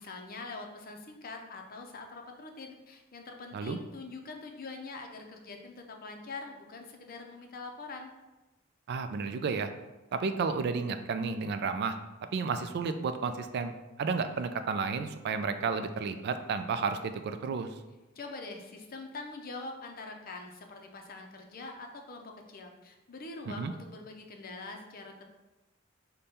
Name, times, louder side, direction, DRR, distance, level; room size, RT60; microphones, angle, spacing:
voice 1, 0.0-8.1 18.2-25.2, left 3 dB, 45° left, 3 dB, 0.6 m, -44 dB
voice 2, 8.9-9.7 10.1-12.0 12.3-13.7 14.0-17.7 23.5-23.7, right 5 dB, 55° right, 9 dB, 0.3 m, -32 dB
5.2 x 2.2 x 4.2 m, 1.1 s
head